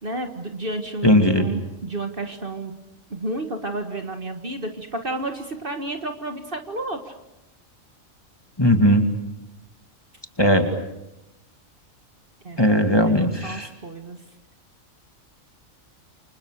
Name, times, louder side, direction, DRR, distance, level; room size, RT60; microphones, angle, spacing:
voice 1, 0.0-2.7 3.1-7.1 12.4-12.7 13.0-14.2, right 2 dB, 40° right, 5 dB, 2.0 m, -31 dB
voice 2, 1.0-1.5 8.6-9.1 10.4-10.7 12.6-13.7, equal, 20° left, 5 dB, 2.4 m, -18 dB
29.5 x 26.5 x 6.6 m, 0.90 s
omnidirectional pair, 1.4 m